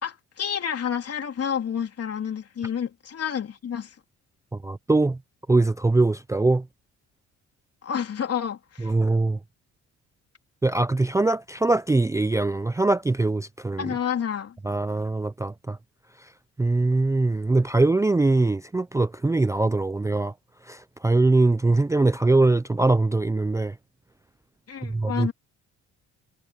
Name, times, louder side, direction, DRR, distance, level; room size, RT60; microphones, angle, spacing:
voice 1, 0.0-3.9 7.8-8.9 13.8-14.6 24.7-25.3, left 8 dB, 55° left, 3.4 m, -29 dB
voice 2, 4.6-5.2 5.5-6.7 8.8-9.4 10.6-13.9 14.6-15.8 16.6-20.3 20.6-23.7 24.8-25.3, right 2 dB, 10° right, 0.5 m, -22 dB
cardioid pair, 90°, 30 cm